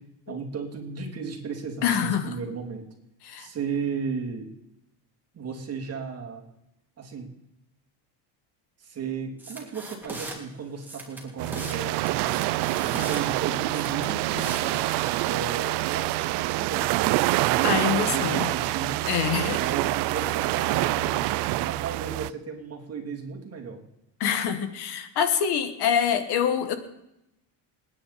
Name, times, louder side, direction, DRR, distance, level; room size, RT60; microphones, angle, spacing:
voice 1, 0.0-2.8 3.4-4.5 5.3-6.4 7.0-7.3 8.8-14.8 15.2-19.1 19.5-23.8, right 5 dB, 35° right, 1 dB, 3.0 m, -35 dB
voice 2, 1.8-2.4 3.2-3.5 17.6-18.5 19.1-19.6 24.2-26.8, left 8 dB, 60° left, 9 dB, 1.6 m, -25 dB
sound 1, 9.4-10.4 10.8-11.8 12.1-13.2 13.7-15.1, right 2 dB, 5° right, 2.7 m, -38 dB
sound 2, 11.4-22.3, right 18 dB, 65° right, 0.6 m, -26 dB
27.5 x 9.8 x 4.2 m, 0.86 s
cardioid pair, 140°, 44 cm